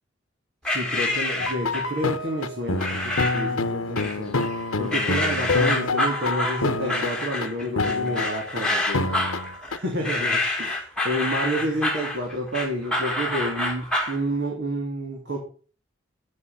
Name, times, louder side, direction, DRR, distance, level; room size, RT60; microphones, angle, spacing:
sound 1, 0.6-2.0 2.8-3.5 4.0-4.5 4.9-14.2, left 1 dB, 5° left, 1.9 m, -27 dB
voice 1, 0.6-4.4 4.8-9.3 9.7-15.4, equal, 55° right, -1 dB, 3.1 m, -29 dB
sound 2, 1.4-7.5 7.8-8.6 8.9-9.8, left 3 dB, 85° left, 1.0 m, -27 dB
9.2 x 8.4 x 5.6 m, 0.37 s
head